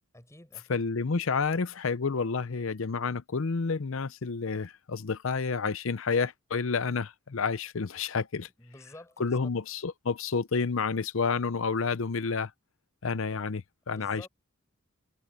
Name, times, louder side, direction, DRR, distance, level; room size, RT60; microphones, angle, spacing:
voice 1, 0.1-0.8 8.6-9.4 13.9-14.3, left 1 dB, 15° left, 7.8 m, -50 dB
voice 2, 0.7-8.5 9.2-12.5 13.0-14.3, left 5 dB, 65° left, 0.6 m, -30 dB
head